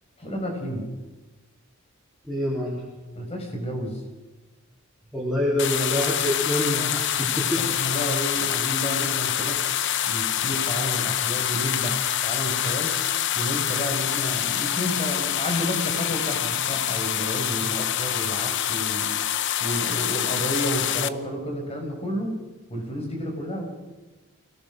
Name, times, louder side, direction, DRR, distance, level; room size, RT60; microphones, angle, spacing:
voice 1, 0.2-0.9 3.1-4.0 7.6-9.6 10.0-13.0 13.3-19.1 19.6-22.4 22.7-23.6, equal, 30° left, 2 dB, 5.3 m, -31 dB
voice 2, 2.2-2.8 5.1-7.7, left 1 dB, ahead, -7 dB, 4.2 m, -26 dB
sound 1, 5.6-21.1, left 11 dB, 55° left, 0.8 m, -26 dB
25.0 x 18.0 x 6.3 m, 1.1 s
head